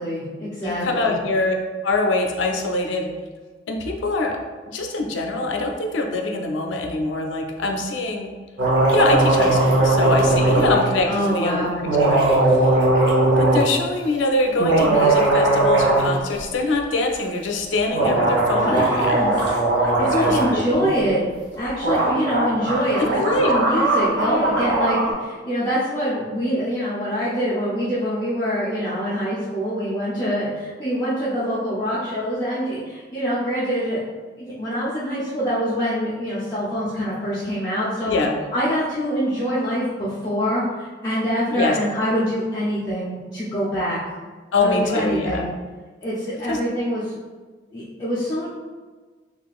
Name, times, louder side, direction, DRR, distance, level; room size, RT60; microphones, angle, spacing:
voice 1, 0.0-1.1 11.1-11.8 18.6-21.2 21.6-34.0 34.4-38.2 38.5-44.0 44.6-45.5 46.0-47.1 47.7-48.5, equal, 20° left, -11 dB, 0.5 m, -25 dB
voice 2, 0.6-1.5 1.8-3.1 3.7-4.4 4.7-8.3 8.9-12.7 13.4-19.2 20.3-21.0 23.2-23.5 38.1-38.4 41.5-41.8 44.5-45.5 46.5-46.6, left 2 dB, 85° left, 2 dB, 0.4 m, -24 dB
sound 1, 8.6-10.8 11.9-13.7 14.5-16.1 16.4-16.5 17.9-20.6 21.5-21.6 21.8-25.1, right 2 dB, 65° right, 0.7 m, -19 dB
3.7 x 2.4 x 2.3 m, 1.4 s
head